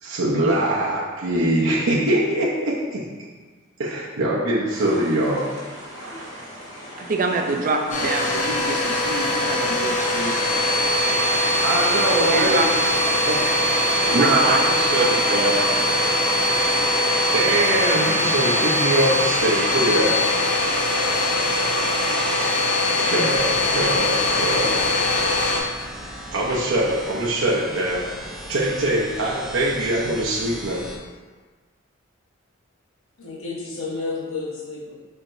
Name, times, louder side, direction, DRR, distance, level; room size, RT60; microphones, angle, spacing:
voice 1, 0.0-3.0 3.8-5.5 6.0-6.3 11.6-12.6 13.2-13.4 14.0-15.5 17.3-20.2 23.0-24.8 26.3-28.0 28.5-30.8, right 1 dB, 75° right, -5 dB, 0.7 m, -23 dB
sound 1, 4.7-18.0, equal, 20° left, 1.4 m, -39 dB
voice 2, 7.0-10.3 12.2-12.9 13.6-13.7 14.0-14.6 15.0-15.7 15.9-16.2, right 3 dB, 40° right, 3 dB, 0.5 m, -26 dB
Domestic sounds home sounds, 7.9-25.6, left 1 dB, 35° left, 0.7 m, -21 dB
sound 2, 23.3-31.0, equal, ahead, 0.7 m, -37 dB
voice 3, 33.2-34.9, left 3 dB, 85° left, -4 dB, 1.1 m, -31 dB
4.6 x 4.3 x 2.6 m, 1.4 s
head